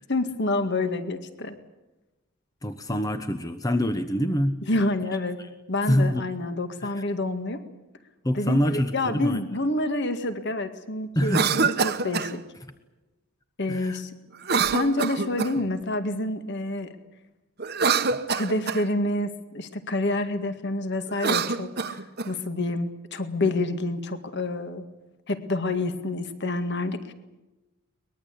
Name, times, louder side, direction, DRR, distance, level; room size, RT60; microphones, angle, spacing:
voice 1, 0.1-1.6 4.6-5.4 5.7-7.6 8.3-12.4 13.6-14.1 14.7-16.9 18.3-24.8 25.3-27.1, left 2 dB, 50° left, 8 dB, 2.0 m, -28 dB
voice 2, 2.6-4.6 5.9-6.2 6.8-6.9 8.2-9.4 11.2-11.7 13.7-14.0, equal, 15° left, 9 dB, 0.9 m, -25 dB
Cough, 11.2-12.3 14.4-15.7 17.6-18.8 21.1-22.3, right 5 dB, 45° right, 1.1 m, -25 dB
23.0 x 21.0 x 8.5 m, 1.0 s
head